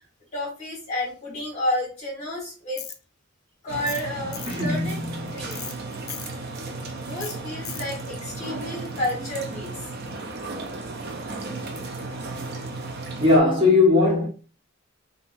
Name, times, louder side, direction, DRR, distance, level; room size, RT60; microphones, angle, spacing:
voice 1, 0.3-2.8 3.6-5.0 5.3-5.6 7.0-9.7, left 1 dB, 35° left, 1.4 m, -30 dB
Tools, 2.8-3.0 3.9-4.1 4.3-4.6 5.5-5.7 6.1-6.3 7.2-7.3 7.6-7.9, left 10 dB, 75° left, 0.4 m, -36 dB
sound 1, 3.7-13.4, right 3 dB, 45° right, 0.5 m, -34 dB
voice 2, 4.2-5.3 13.2-14.3, left 3 dB, 25° right, 1.1 m, -20 dB
3.7 x 2.2 x 2.6 m
head